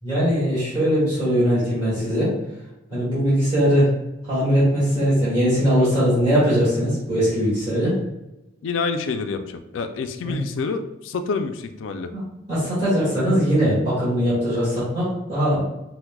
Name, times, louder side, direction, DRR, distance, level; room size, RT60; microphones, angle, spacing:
voice 1, 0.0-2.3 2.9-3.9 4.2-8.0 10.2-10.3 12.1-12.2 12.5-15.6, equal, 30° right, -11 dB, 1.4 m, -20 dB
voice 2, 8.6-12.1, left 4 dB, 80° left, 8 dB, 0.3 m, -27 dB
4.5 x 2.1 x 2.2 m, 0.95 s
head